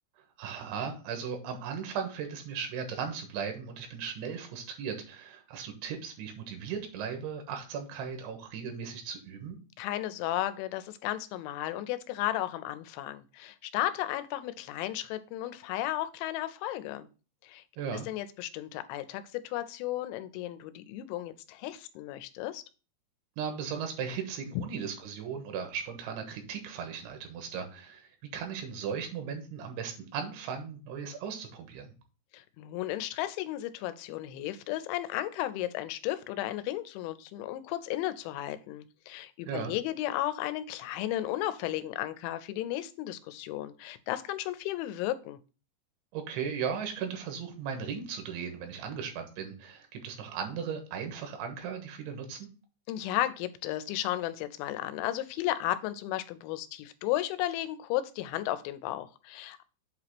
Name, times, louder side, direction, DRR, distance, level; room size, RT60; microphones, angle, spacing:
voice 1, 0.4-9.6 17.8-18.1 23.4-31.9 39.5-39.7 46.1-52.5, right 7 dB, 85° right, 5 dB, 3.6 m, -37 dB
voice 2, 9.8-17.1 17.4-17.6 18.1-22.6 32.3-45.4 52.9-59.6, left 14 dB, 90° left, 12 dB, 3.0 m, -34 dB
8.1 x 3.0 x 5.9 m, 0.34 s
omnidirectional pair, 5.2 m